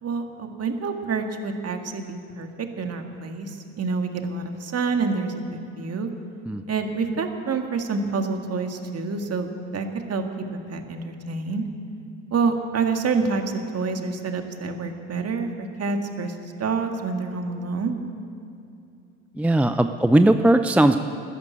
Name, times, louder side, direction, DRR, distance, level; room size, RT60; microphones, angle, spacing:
voice 1, 0.0-6.1 6.7-10.2 10.5-11.6 12.3-18.0, right 4 dB, 40° right, 5 dB, 2.1 m, -27 dB
voice 2, 19.4-21.0, right 1 dB, 5° right, 8 dB, 0.5 m, -18 dB
13.5 x 12.5 x 8.6 m, 2.6 s
hypercardioid pair, 60°, 39 cm